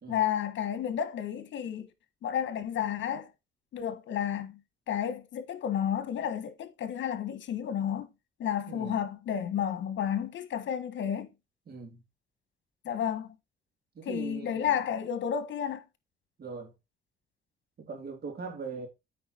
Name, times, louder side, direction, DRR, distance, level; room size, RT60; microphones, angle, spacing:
voice 1, 0.1-1.9 2.2-3.3 3.7-4.6 4.9-8.1 8.4-11.3 12.8-13.3 14.0-15.8, left 9 dB, 70° left, 1.4 m, -31 dB
voice 2, 8.7-9.0 11.7-12.0 14.0-14.8 16.4-16.7 17.9-18.9, right 4 dB, 50° right, 3.6 m, -40 dB
8.6 x 5.0 x 4.3 m
cardioid pair, 90°, 20 cm